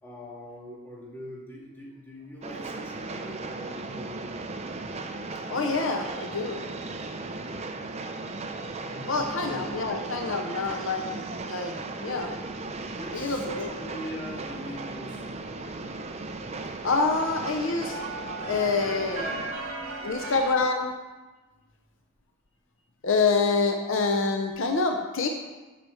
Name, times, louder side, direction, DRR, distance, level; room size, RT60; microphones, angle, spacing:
voice 1, 0.0-4.4 8.7-9.9 13.0-15.3 19.5-20.2 21.6-21.7, equal, 10° left, -4 dB, 1.9 m, -42 dB
Train, 2.4-19.5, right 3 dB, 30° right, 0.5 m, -37 dB
voice 2, 5.5-6.6 9.1-12.3 13.1-13.7 16.8-18.0 18.4-19.4 20.0-21.0 23.0-25.3, left 4 dB, 60° left, 4 dB, 0.7 m, -27 dB
sound 1, 12.1-20.5, right 2 dB, 75° right, 2.0 m, -38 dB
8.5 x 6.0 x 6.9 m, 1.2 s
head